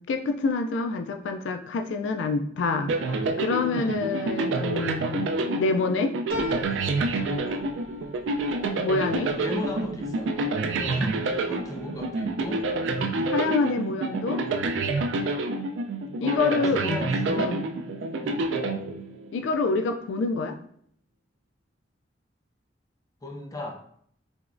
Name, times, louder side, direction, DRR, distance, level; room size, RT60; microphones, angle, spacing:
voice 1, 0.1-5.3 5.6-6.2 8.8-9.3 13.2-14.4 16.2-16.8 17.4-17.6 19.3-20.6, left 3 dB, 85° left, 6 dB, 0.3 m, -27 dB
sound 1, 2.9-19.4, right 2 dB, 90° right, 0.3 m, -28 dB
voice 2, 3.7-4.1 9.3-10.3 10.7-13.1 16.2-17.5 18.2-18.5 23.2-23.7, left 1 dB, 20° left, 0 dB, 0.5 m, -36 dB
sound 2, 6.3-11.1 11.5-12.2 12.6-12.7, equal, 55° right, 0.7 m, -40 dB
3.4 x 3.0 x 2.5 m, 0.64 s
head